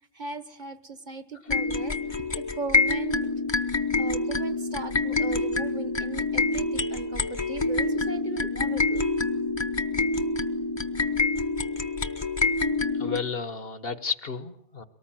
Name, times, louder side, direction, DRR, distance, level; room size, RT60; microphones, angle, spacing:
voice 1, 0.1-3.3 4.0-9.1, right 4 dB, 45° right, 12 dB, 1.4 m, -38 dB
sound 1, 1.5-13.2, left 3 dB, 25° left, 1.0 m, -26 dB
voice 2, 13.0-14.8, left 5 dB, 60° left, 13 dB, 1.5 m, -32 dB
23.5 x 19.0 x 9.1 m, 0.68 s
omnidirectional pair, 1.1 m